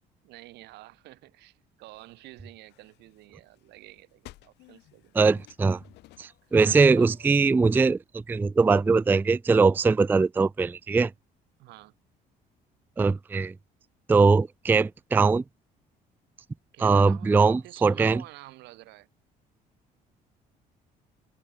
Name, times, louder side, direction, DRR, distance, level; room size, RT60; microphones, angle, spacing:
voice 1, 0.2-5.1 6.4-7.1 11.6-11.9 16.7-19.1, right 19 dB, 85° right, 3.9 m, -49 dB
sound 1, 1.9-7.5, left 18 dB, 85° left, 6.8 m, -56 dB
voice 2, 5.2-5.8 6.2-11.1 13.0-13.5 14.1-15.4 16.8-18.2, right 4 dB, 10° right, 0.3 m, -21 dB
cardioid pair, 110°, 17 cm